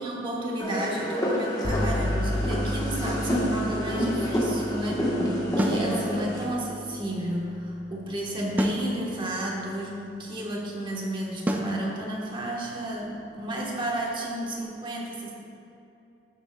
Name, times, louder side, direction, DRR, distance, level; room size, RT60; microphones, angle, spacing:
voice 1, 0.0-15.3, right 1 dB, 25° right, -3 dB, 1.2 m, -32 dB
sound 1, 0.6-6.4, equal, 20° left, 1.2 m, -28 dB
sound 2, 1.6-9.4, left 1 dB, 70° left, 1.6 m, -34 dB
sound 3, 5.6-5.9 8.6-8.9 11.5-11.8, equal, 10° right, 0.4 m, -25 dB
11.5 x 7.2 x 2.2 m, 2.8 s
head